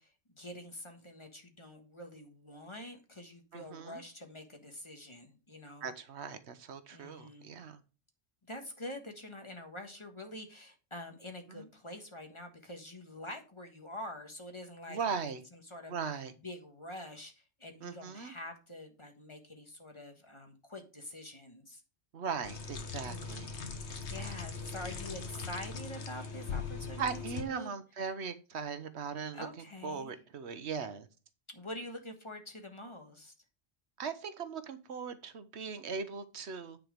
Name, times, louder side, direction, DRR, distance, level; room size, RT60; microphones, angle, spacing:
voice 1, 0.0-5.9 6.9-7.5 8.5-21.8 23.0-23.7 24.1-27.7 29.3-30.1 31.5-33.3, left 1 dB, 25° left, 1.5 m, -46 dB
voice 2, 3.5-4.0 5.8-7.8 11.5-11.7 14.9-15.4 15.9-16.3 17.8-18.3 22.1-23.5 24.1-24.3 27.0-29.5 29.8-31.1 34.0-36.8, right 6 dB, 80° right, 1.2 m, -39 dB
sound 1, 22.4-27.4, left 5 dB, 85° left, 1.4 m, -40 dB
9.4 x 4.6 x 5.1 m
omnidirectional pair, 1.1 m